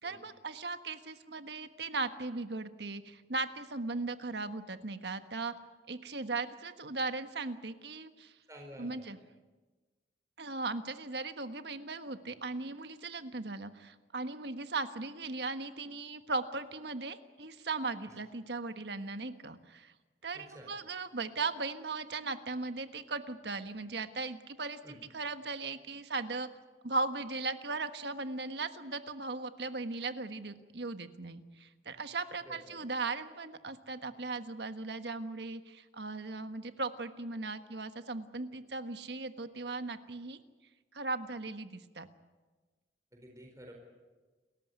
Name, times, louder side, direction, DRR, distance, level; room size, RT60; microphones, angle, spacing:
voice 1, 0.0-5.5 5.9-8.3 8.8-9.2 10.4-19.9 20.2-26.5 26.8-40.4 40.9-42.1, right 3 dB, 70° right, 9 dB, 1.4 m, -38 dB
voice 2, 8.5-9.0 18.0-18.1 20.3-20.7 24.8-25.0 32.4-32.8 43.1-43.7, equal, 20° right, 1 dB, 4.6 m, -50 dB
29.5 x 14.0 x 9.6 m, 1.3 s
head